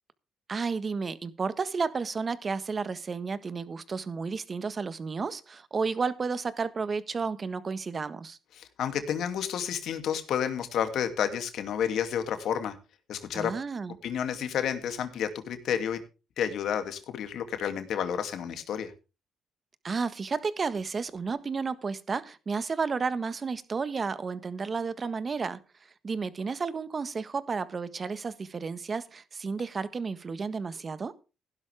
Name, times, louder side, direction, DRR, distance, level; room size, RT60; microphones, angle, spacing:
voice 1, 0.5-8.4 13.3-14.0 19.8-25.6 26.0-31.2, right 5 dB, 35° right, 1.5 m, -32 dB
voice 2, 8.6-12.7 13.1-13.5 14.0-16.0 16.4-18.9, left 8 dB, 75° left, 2.6 m, -30 dB
16.0 x 11.5 x 3.5 m
cardioid pair, 90°, 0 cm